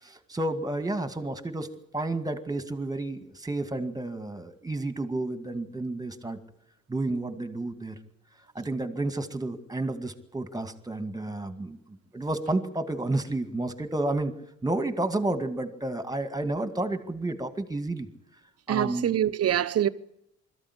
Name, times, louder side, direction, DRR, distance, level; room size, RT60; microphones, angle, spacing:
voice 1, 0.0-1.7 1.9-6.4 6.9-8.0 8.5-11.8 12.1-14.3 14.6-18.1 18.7-19.2, right 2 dB, 10° right, 2.2 m, -31 dB
voice 2, 18.7-19.9, right 10 dB, 55° right, 1.0 m, -25 dB
21.0 x 14.0 x 9.9 m
cardioid pair, 90°, 30 cm